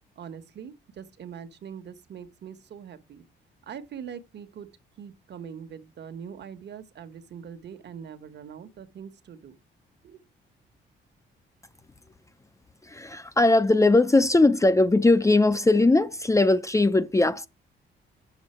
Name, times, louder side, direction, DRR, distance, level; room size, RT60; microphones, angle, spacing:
voice 1, 0.2-3.2 3.7-4.7 5.0-9.6 10.0-10.2, right 7 dB, 60° right, 1.3 m, -42 dB
voice 2, 12.8-17.5, left 2 dB, 15° left, 0.6 m, -20 dB
9.3 x 7.2 x 4.4 m
cardioid pair, 90°, 20 cm